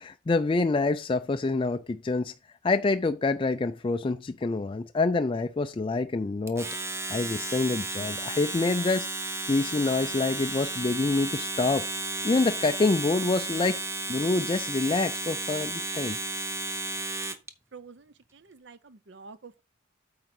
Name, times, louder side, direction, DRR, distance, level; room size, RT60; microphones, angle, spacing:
voice 1, 0.0-2.3 2.6-6.7 7.1-9.1 9.5-11.8 12.2-13.8 14.1-16.2, left 3 dB, 25° left, 0.3 m, -26 dB
Domestic sounds home sounds, 6.5-17.5, right 2 dB, 15° right, 0.7 m, -33 dB
voice 2, 17.7-19.6, right 4 dB, 60° right, 0.7 m, -48 dB
8.7 x 3.7 x 6.1 m
head